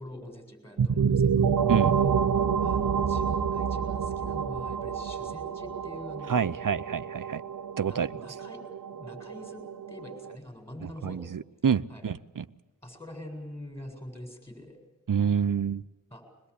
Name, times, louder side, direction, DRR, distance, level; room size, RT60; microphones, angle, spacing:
voice 1, 0.0-1.6 2.6-6.4 7.8-8.6 8.9-11.2 11.9-12.1 12.8-14.8 16.1-16.3, left 1 dB, 10° left, 7.5 m, -44 dB
sound 1, 0.8-10.3, right 7 dB, 90° right, 0.9 m, -28 dB
voice 2, 6.3-7.4 7.8-8.1 10.8-12.4 15.1-15.8, right 7 dB, 65° right, 0.7 m, -27 dB
23.0 x 21.5 x 8.5 m
wide cardioid pair, 40°, 35 cm